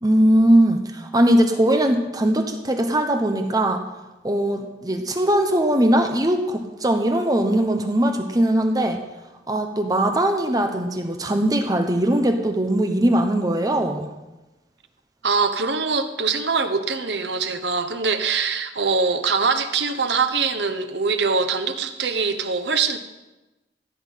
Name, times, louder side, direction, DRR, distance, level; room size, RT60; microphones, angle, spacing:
voice 1, 0.0-3.8 4.2-9.0 9.5-14.1, right 1 dB, 20° right, 6 dB, 0.9 m, -20 dB
voice 2, 15.2-23.0, right 4 dB, 75° right, 8 dB, 1.1 m, -23 dB
15.0 x 9.6 x 5.6 m, 1.0 s
head